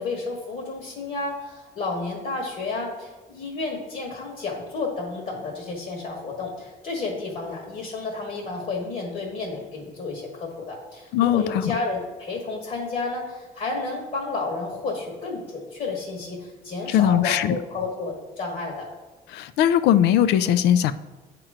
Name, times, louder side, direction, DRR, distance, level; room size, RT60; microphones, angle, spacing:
voice 1, 0.0-18.9, left 3 dB, 50° left, -1 dB, 1.6 m, -31 dB
voice 2, 11.1-11.8 16.9-17.6 19.3-20.9, left 10 dB, 80° left, 13 dB, 0.4 m, -20 dB
8.7 x 3.0 x 4.9 m, 1.2 s
cardioid pair, 110°, 17 cm